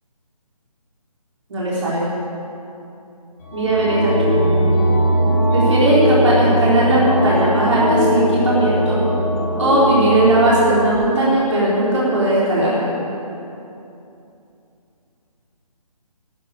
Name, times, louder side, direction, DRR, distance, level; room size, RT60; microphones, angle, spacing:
voice 1, 1.5-2.1 3.5-4.3 5.5-9.0 9.6-12.9, right 1 dB, 50° right, -7 dB, 4.3 m, -17 dB
sound 1, 3.4-11.0, equal, 30° left, 4.2 m, -19 dB
12.0 x 11.5 x 8.5 m, 2.8 s
figure-of-eight pair, 155°, 19 cm